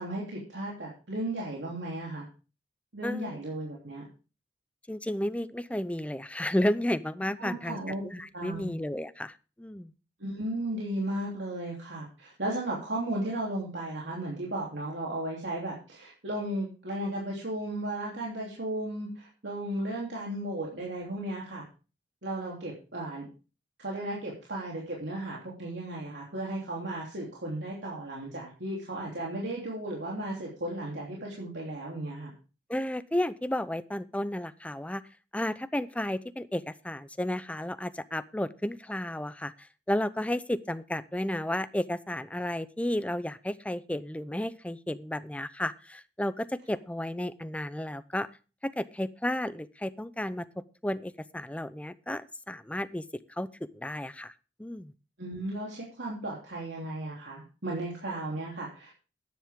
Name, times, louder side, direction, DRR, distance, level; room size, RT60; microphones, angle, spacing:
voice 1, 0.0-2.3 2.9-4.0 7.4-8.0 8.3-8.8 10.2-21.6 22.2-23.3 23.8-32.3 55.2-59.0, right 1 dB, 85° right, -3 dB, 3.2 m, -35 dB
voice 2, 3.0-3.4 4.9-7.8 8.0-9.9 32.7-35.0 35.3-48.3 48.6-53.0 53.4-54.3 54.6-54.9, left 1 dB, 10° left, 14 dB, 0.6 m, -32 dB
13.0 x 10.0 x 3.6 m, 0.34 s
head